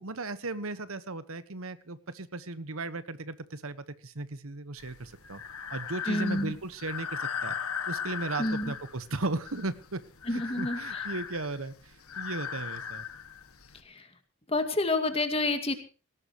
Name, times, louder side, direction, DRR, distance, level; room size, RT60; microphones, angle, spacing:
voice 1, 0.0-5.4 5.7-7.6 7.9-10.0 10.3-13.0, right 2 dB, 70° right, 13 dB, 1.3 m, -36 dB
Breathing, 4.8-13.8, left 7 dB, 80° left, 1.9 m, -38 dB
voice 2, 6.1-6.5 8.4-8.7 10.3-11.0 13.8-14.1 14.5-15.8, left 2 dB, 25° left, 7 dB, 2.3 m, -29 dB
18.0 x 18.0 x 3.1 m, 0.36 s
head